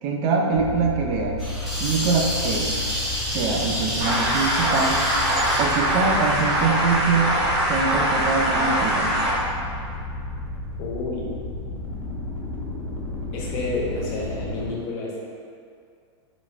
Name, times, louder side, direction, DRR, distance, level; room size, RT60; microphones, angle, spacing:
voice 1, 0.0-1.4 1.8-2.7 3.3-5.0 5.6-7.4 7.7-9.1, right 4 dB, 40° right, 1 dB, 0.4 m, -24 dB
sound 1, 0.5-14.7, left 2 dB, 75° left, 1.1 m, -32 dB
sound 2, 1.4-7.2, equal, ahead, 0.8 m, -30 dB
sound 3, 4.0-9.3, right 1 dB, 70° right, 1.3 m, -23 dB
voice 2, 10.8-11.3 13.3-15.3, left 3 dB, 45° left, -4 dB, 0.7 m, -30 dB
3.4 x 2.4 x 2.4 m, 2.3 s
hypercardioid pair, 135°, 15 cm